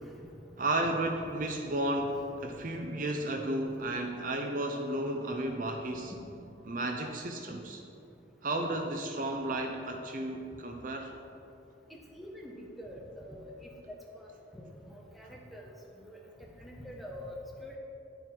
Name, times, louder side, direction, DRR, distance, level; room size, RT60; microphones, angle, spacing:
voice 1, 0.6-6.1 6.6-7.8 8.4-11.1, right 1 dB, 45° right, 4 dB, 0.6 m, -33 dB
voice 2, 2.0-2.6 11.9-17.8, left 1 dB, ahead, -2 dB, 1.1 m, -46 dB
10.0 x 7.8 x 4.5 m, 2.7 s
head